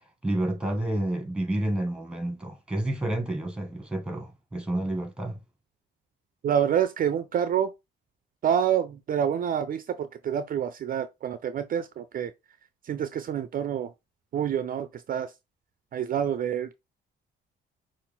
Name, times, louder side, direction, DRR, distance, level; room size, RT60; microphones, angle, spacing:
voice 1, 0.2-5.4, right 1 dB, 5° right, 1.7 m, -29 dB
voice 2, 6.4-7.7 8.4-12.3 12.8-13.9 14.3-15.3 15.9-16.7, right 9 dB, 45° right, 0.4 m, -27 dB
5.8 x 2.5 x 3.5 m
cardioid pair, 90°, 20 cm